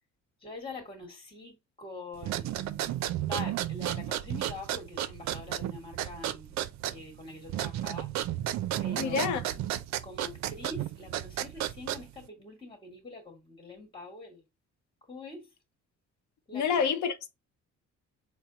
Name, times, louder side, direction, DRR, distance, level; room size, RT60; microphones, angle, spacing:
voice 1, 0.4-2.9 3.2-6.6 6.9-8.1 8.8-9.7 10.0-14.4 15.1-15.5 16.5-16.8, left 3 dB, 15° left, 1.4 m, -44 dB
sound 1, 2.2-12.3, right 12 dB, 70° right, 0.4 m, -33 dB
voice 2, 9.0-9.4 16.5-17.3, left 6 dB, 80° left, 0.8 m, -28 dB
4.3 x 2.1 x 3.7 m
cardioid pair, 95°, 29 cm